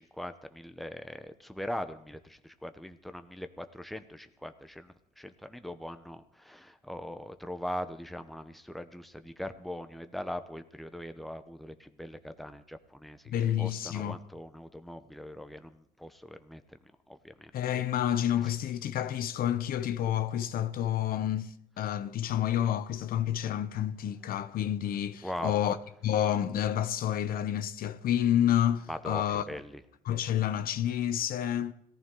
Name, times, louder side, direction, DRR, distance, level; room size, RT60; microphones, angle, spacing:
voice 1, 0.0-16.6 17.1-17.5 25.2-25.6 28.9-29.8, equal, ahead, 0.9 m, -41 dB
voice 2, 13.3-14.2 17.5-25.8 26.0-29.4 30.1-31.7, left 11 dB, 60° left, 0.7 m, -29 dB
18.0 x 14.5 x 3.8 m
cardioid pair, 110°, 17 cm